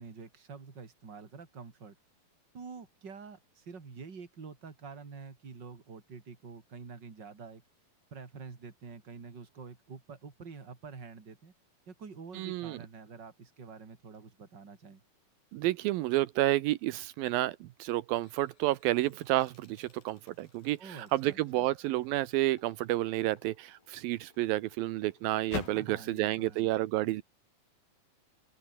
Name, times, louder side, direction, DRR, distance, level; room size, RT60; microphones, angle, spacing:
voice 1, 0.0-2.0 2.5-7.6 8.1-11.5 11.9-15.0 20.8-21.7 25.7-26.7, right 5 dB, 30° right, 3.5 m, -47 dB
voice 2, 12.3-12.8 15.5-27.2, right 16 dB, 80° right, 2.6 m, -30 dB
sound 1, 17.0-17.4 17.9-26.0, left 5 dB, 80° left, 6.8 m, -48 dB
open air
omnidirectional pair, 4.1 m